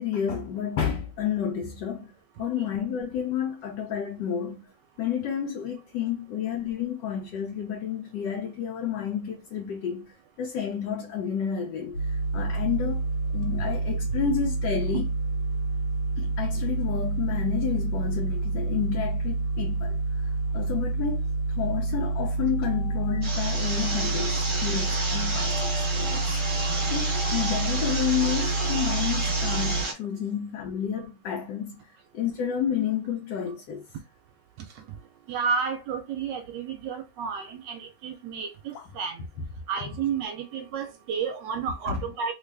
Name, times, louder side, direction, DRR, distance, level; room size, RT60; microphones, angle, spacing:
voice 1, 0.0-2.1 2.4-4.7 5.0-10.1 10.4-13.0 13.3-15.1 16.2-20.0 20.5-21.3 21.6-26.2 26.9-33.9 38.7-38.8 39.8-40.0 41.9-42.1, left 8 dB, 75° left, 1.2 m, -30 dB
sound 1, 11.9-29.8, right 3 dB, 90° left, 1.5 m, -28 dB
sound 2, 23.2-29.9, right 2 dB, 30° right, 1.3 m, -31 dB
voice 2, 35.3-39.2 39.7-42.3, right 6 dB, 75° right, 1.2 m, -31 dB
3.4 x 2.3 x 3.3 m
omnidirectional pair, 2.0 m